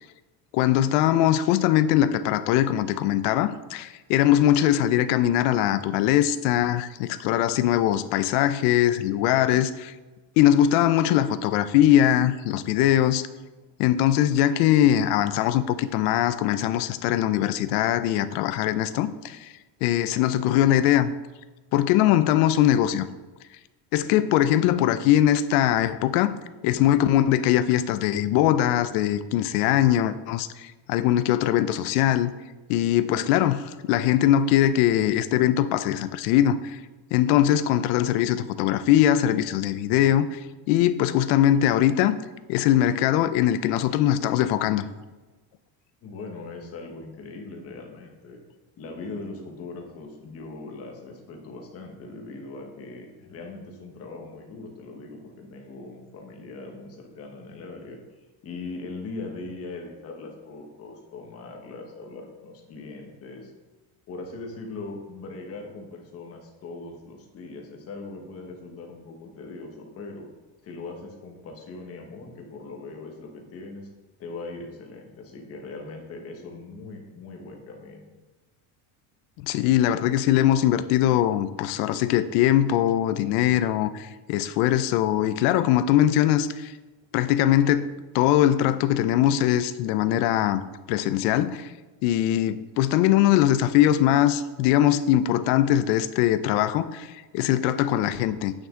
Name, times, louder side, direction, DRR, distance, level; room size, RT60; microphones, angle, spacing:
voice 1, 0.5-9.9 10.4-13.3 13.8-19.5 19.8-21.1 21.7-23.1 23.9-26.3 26.6-32.3 32.7-36.8 37.1-40.4 40.7-42.1 42.5-44.8 79.4-86.7 87.1-87.9 88.1-90.6 90.9-91.7 92.0-98.5, left 12 dB, 90° left, 13 dB, 0.7 m, -21 dB
voice 2, 46.0-48.4 48.8-58.0 58.4-63.5 64.1-70.3 70.6-73.9 74.2-78.1, left 3 dB, 30° left, 1 dB, 1.2 m, -40 dB
9.0 x 6.1 x 3.7 m, 1.2 s
cardioid pair, 180°, 45 cm